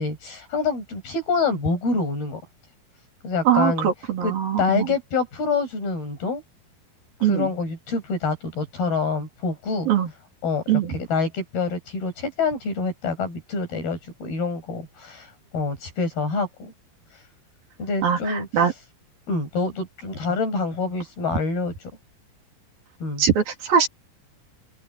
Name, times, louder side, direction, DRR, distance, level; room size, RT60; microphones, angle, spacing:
voice 1, 0.0-2.4 3.2-3.9 4.2-6.4 7.2-9.9 10.4-15.3 15.5-16.7 17.8-18.5 19.3-21.7 23.0-23.2, left 4 dB, 65° left, 9.7 m, -26 dB
voice 2, 3.4-4.9 7.2-7.5 9.9-10.1 10.7-11.0 18.0-18.7 23.2-23.9, right 8 dB, 60° right, 4.9 m, -21 dB
omnidirectional pair, 4.6 m